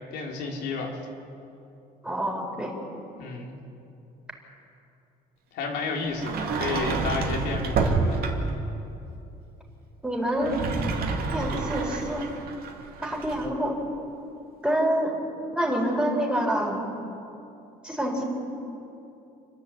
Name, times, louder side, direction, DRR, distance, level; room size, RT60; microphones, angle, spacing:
voice 1, 0.1-1.0 3.2-3.5 5.5-8.2, left 4 dB, 85° left, 0 dB, 3.2 m, -31 dB
voice 2, 2.0-2.7 10.0-10.7 11.3-12.2 13.0-13.7 14.6-15.1 15.6-16.8 17.8-18.2, right 1 dB, 5° right, 0 dB, 4.2 m, -26 dB
Sliding door, 6.1-8.7 10.3-13.5, right 4 dB, 65° right, 2.5 m, -28 dB
29.0 x 10.5 x 8.4 m, 2.8 s
cardioid pair, 110°, 17 cm